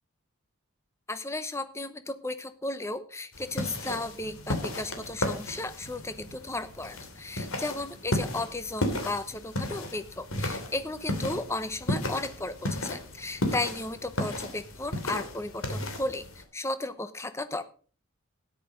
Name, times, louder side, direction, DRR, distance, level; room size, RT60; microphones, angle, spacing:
voice 1, 1.1-17.6, left 2 dB, 15° left, 11 dB, 0.9 m, -35 dB
sound 1, 3.3-16.4, left 1 dB, 75° left, 2.9 m, -34 dB
13.0 x 10.0 x 5.2 m, 0.41 s
head